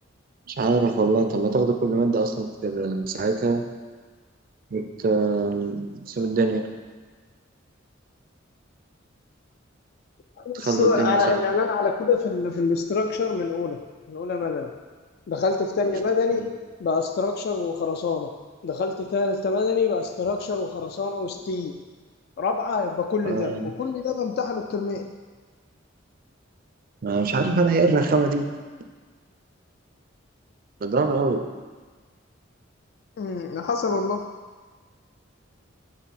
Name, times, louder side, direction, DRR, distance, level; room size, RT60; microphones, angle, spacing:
voice 1, 0.5-3.6 4.7-6.6 10.5-11.5 16.3-16.5 23.2-23.7 27.0-28.5 30.8-31.4, right 3 dB, 45° right, 6 dB, 0.4 m, -23 dB
voice 2, 10.4-13.8 14.1-14.7 15.3-16.5 16.8-18.3 18.6-21.8 22.4-25.1 33.2-34.3, left 4 dB, 55° left, 5 dB, 0.3 m, -25 dB
6.4 x 3.6 x 4.1 m, 1.4 s
head